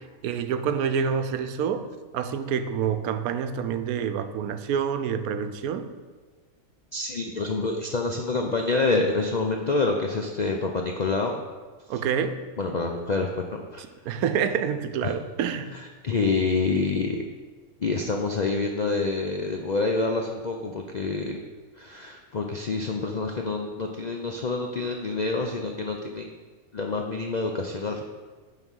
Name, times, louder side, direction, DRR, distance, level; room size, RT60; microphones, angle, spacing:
voice 1, 0.2-1.9 2.1-5.9 11.9-12.4 14.1-15.7, right 7 dB, 85° right, 10 dB, 1.1 m, -27 dB
voice 2, 6.9-11.4 12.6-13.8 15.0-15.1 16.0-17.3 17.8-21.4 21.8-26.3 26.7-28.0, left 3 dB, 65° left, 2 dB, 0.4 m, -27 dB
8.9 x 3.9 x 6.2 m, 1.4 s
omnidirectional pair, 1.5 m